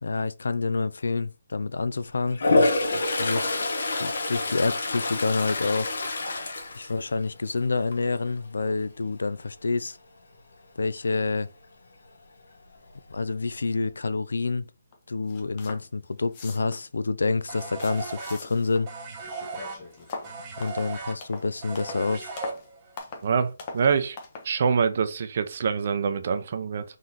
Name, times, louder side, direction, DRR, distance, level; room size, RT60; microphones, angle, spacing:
voice 1, 0.0-2.4 3.2-3.6 4.0-6.0 6.7-10.0 10.8-11.5 13.1-14.7 15.1-18.9 20.6-22.3, left 3 dB, 80° left, 0.4 m, -28 dB
Toilet flush, 2.3-7.5 7.9-8.3 12.7-12.8 13.1-13.9, left 2 dB, 65° left, 1.0 m, -26 dB
sound 1, 14.9-15.0 15.3-15.9 16.2-16.9 17.4-18.9 19.2-22.1 22.4-22.7 23.0-23.3 23.6-23.9 24.2-24.5, left 4 dB, 25° left, 0.7 m, -41 dB
sound 2, 17.5-23.0, right 4 dB, 20° right, 0.9 m, -38 dB
voice 2, 23.2-24.2 24.4-26.8, right 6 dB, 40° right, 0.5 m, -25 dB
3.9 x 3.1 x 3.9 m
hypercardioid pair, 170°, 0 cm